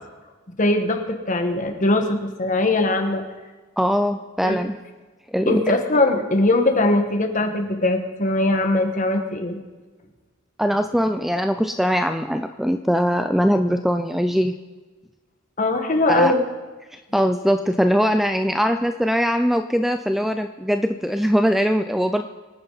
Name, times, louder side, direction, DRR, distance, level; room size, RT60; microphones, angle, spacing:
voice 1, 0.6-3.2 4.4-4.5 5.5-9.6 15.6-16.5, left 2 dB, 40° left, 5 dB, 1.5 m, -21 dB
voice 2, 3.8-4.7 5.3-5.6 10.6-14.5 16.1-16.3 16.9-22.3, equal, ahead, 8 dB, 0.4 m, -21 dB
24.0 x 9.5 x 4.0 m, 1.3 s
head